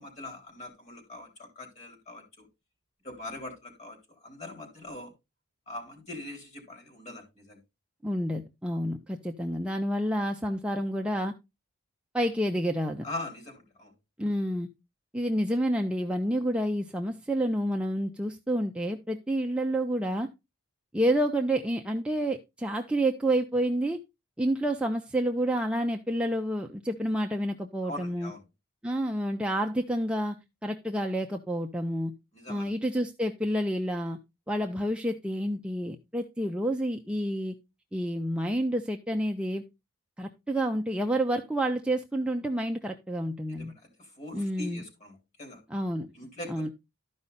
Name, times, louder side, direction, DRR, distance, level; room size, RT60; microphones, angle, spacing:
voice 1, 0.0-2.5 3.0-5.1 5.7-7.6 13.0-13.9 27.8-28.4 32.3-32.7 43.5-45.6 46.1-46.7, left 2 dB, 35° left, 3.8 m, -42 dB
voice 2, 8.0-11.3 12.1-13.0 14.2-14.7 15.1-20.3 20.9-24.0 24.4-28.3 28.8-30.4 30.6-32.1 32.5-34.2 34.5-37.5 37.9-39.6 40.2-43.7 44.3-44.8 45.7-46.1 46.5-46.7, right 1 dB, 5° right, 0.6 m, -29 dB
12.5 x 5.4 x 4.0 m
head